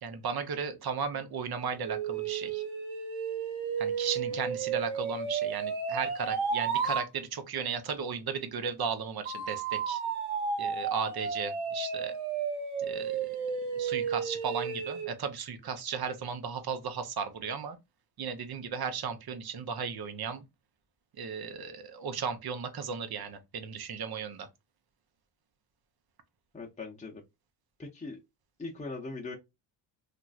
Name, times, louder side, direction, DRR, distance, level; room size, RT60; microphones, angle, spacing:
voice 1, 0.0-2.6 3.8-10.0 10.6-12.2 12.8-13.3 13.7-17.8 18.2-20.5 21.2-24.5, right 6 dB, 50° right, 0.8 m, -35 dB
sound 1, 1.8-7.1 9.3-15.1, right 6 dB, 75° right, 1.2 m, -33 dB
voice 2, 26.5-27.2 27.8-28.2 28.6-29.3, left 3 dB, 15° left, 0.8 m, -40 dB
3.0 x 2.5 x 2.3 m
supercardioid pair, 55°, 50 cm